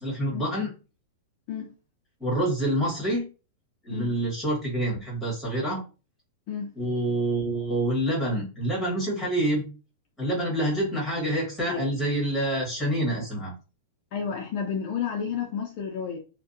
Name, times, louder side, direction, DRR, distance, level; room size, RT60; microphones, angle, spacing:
voice 1, 0.0-0.7 2.2-3.2 3.8-5.8 6.8-9.6 10.2-13.5, right 1 dB, 5° left, 1.3 m, -27 dB
voice 2, 14.1-16.2, left 7 dB, 40° left, 0.4 m, -31 dB
2.6 x 2.1 x 2.5 m
supercardioid pair, 155°, 0 cm